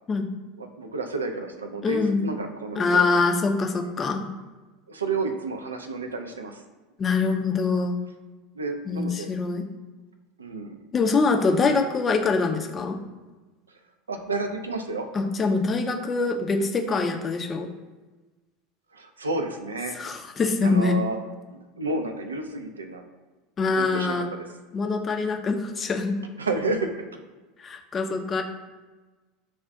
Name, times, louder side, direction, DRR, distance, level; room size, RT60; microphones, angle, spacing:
voice 1, 0.6-3.1 4.9-6.6 8.6-9.3 10.4-10.8 14.1-15.1 18.9-20.0 20.6-21.2 21.5-23.0 23.7-24.5 26.4-27.2, right 3 dB, 75° right, 6 dB, 0.4 m, -31 dB
voice 2, 1.8-2.3 2.8-4.3 7.0-8.0 8.9-9.7 10.9-13.0 15.1-17.7 20.0-21.0 23.6-24.3 24.7-26.2 27.6-28.4, left 4 dB, 25° left, 4 dB, 0.4 m, -24 dB
6.7 x 2.4 x 2.3 m, 1.2 s
figure-of-eight pair, 75°, 0 cm